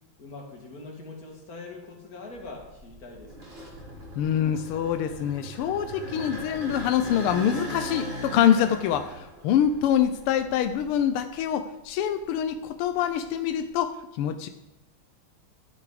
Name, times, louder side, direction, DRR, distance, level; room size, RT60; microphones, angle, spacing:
voice 1, 0.2-3.6, left 3 dB, 45° left, 1 dB, 2.5 m, -43 dB
sound 1, 2.4-11.4 11.8-13.7, right 1 dB, 25° right, 2.9 m, -40 dB
voice 2, 4.2-14.5, left 9 dB, 90° left, 10 dB, 1.6 m, -25 dB
12.0 x 8.2 x 5.0 m, 0.96 s
omnidirectional pair, 2.4 m